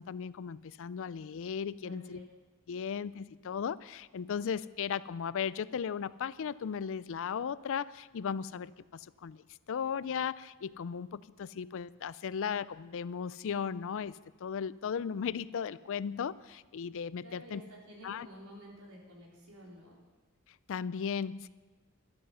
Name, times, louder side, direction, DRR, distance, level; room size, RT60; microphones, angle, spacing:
voice 1, 0.0-2.2 2.7-17.6 18.0-18.3 20.7-21.5, left 7 dB, 60° left, 18 dB, 0.4 m, -36 dB
voice 2, 1.8-2.2 17.2-20.0, equal, 85° right, -3 dB, 3.9 m, -51 dB
13.5 x 12.0 x 5.6 m, 1.3 s
head